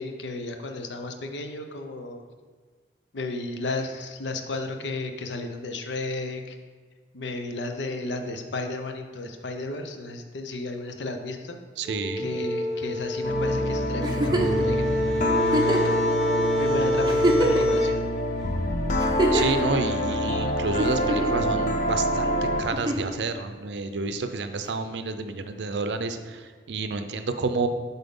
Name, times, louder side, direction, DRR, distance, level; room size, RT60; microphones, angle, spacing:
voice 1, 0.0-2.2 3.1-6.6 7.1-11.6 12.2-18.0, left 2 dB, 85° left, 5 dB, 0.6 m, -33 dB
sound 1, 11.8-18.0, equal, ahead, 1.1 m, -26 dB
voice 2, 11.8-12.3 19.3-27.7, right 4 dB, 75° right, 9 dB, 0.5 m, -29 dB
sound 2, 13.2-22.7, left 1 dB, 45° left, 0.5 m, -26 dB
Giggle, 14.0-14.6 15.5-16.0 16.6-16.7 17.0-17.8 19.0-19.6 20.8-21.4 22.7-23.2 24.7-24.8, right 1 dB, 25° right, 0.5 m, -25 dB
7.8 x 4.1 x 3.6 m, 1.5 s
head